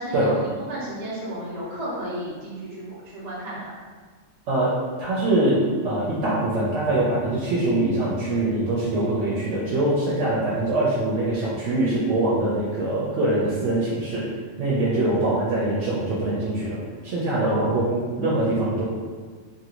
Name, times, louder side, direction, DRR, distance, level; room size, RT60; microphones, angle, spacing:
voice 1, 0.0-3.7 17.4-18.0, equal, 40° right, -9 dB, 0.8 m, -33 dB
voice 2, 4.5-16.8 17.0-18.8, right 2 dB, 75° right, -8 dB, 1.0 m, -23 dB
2.9 x 2.6 x 2.9 m, 1.5 s
omnidirectional pair, 1.3 m